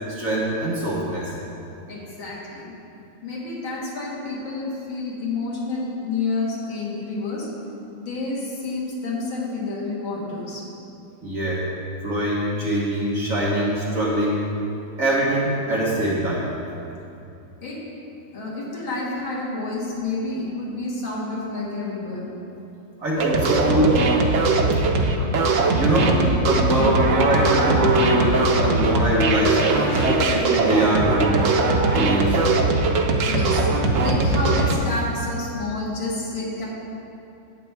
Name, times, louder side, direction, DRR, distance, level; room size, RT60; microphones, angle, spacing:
voice 1, 0.1-1.3 11.2-11.7 12.0-14.4 15.0-16.5 23.0-24.0 25.7-26.2 26.5-29.6 30.0-31.4 31.9-32.4, right 1 dB, 45° right, -5 dB, 1.4 m, -22 dB
voice 2, 1.9-2.7 3.2-7.5 7.9-10.7 17.6-17.8 18.3-22.3 23.3-23.4 26.0-26.3 26.7-26.9 29.8-30.2 33.3-33.7 34.0-36.7, left 3 dB, 70° left, -5 dB, 2.5 m, -29 dB
sound 1, 23.2-34.8, right 3 dB, 85° right, 0.7 m, -20 dB
11.5 x 8.6 x 3.4 m, 2.7 s
omnidirectional pair, 2.3 m